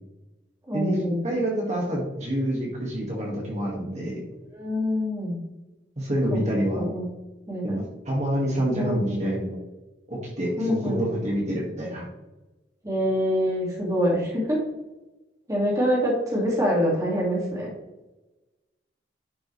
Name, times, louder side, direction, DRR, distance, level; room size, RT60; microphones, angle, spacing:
voice 1, 0.7-1.4 4.5-5.4 6.3-6.4 6.7-7.1 7.5-7.8 8.7-9.2 10.6-11.2 12.8-14.6 15.5-17.7, equal, 20° right, -4 dB, 2.5 m, -25 dB
voice 2, 1.2-4.2 6.0-6.8 7.6-9.5 10.1-12.1, right 1 dB, 40° right, -3 dB, 2.1 m, -27 dB
10.5 x 6.1 x 3.4 m, 1.1 s
head